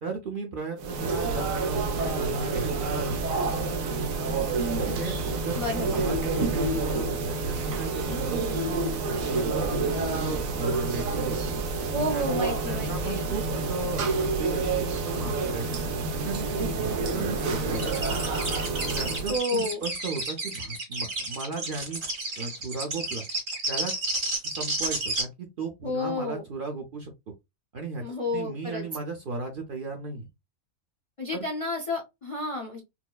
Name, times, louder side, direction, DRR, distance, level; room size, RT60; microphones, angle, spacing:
voice 1, 0.0-3.2 4.8-8.4 9.2-11.5 12.1-12.4 12.7-15.7 16.1-18.2 18.9-22.0 22.4-23.2 23.7-23.9 24.4-27.1 27.7-30.3 31.3-31.4, right 3 dB, 50° right, 0.7 m, -36 dB
sound 1, 0.8-19.4, right 3 dB, 85° right, 1.2 m, -28 dB
voice 2, 5.6-6.1 11.9-13.3 19.3-19.8 25.8-26.4 28.0-28.8 31.2-32.8, left 2 dB, 35° left, 0.6 m, -31 dB
sound 2, 17.7-25.2, right 2 dB, 70° right, 2.1 m, -31 dB
4.5 x 2.0 x 2.2 m
omnidirectional pair, 1.4 m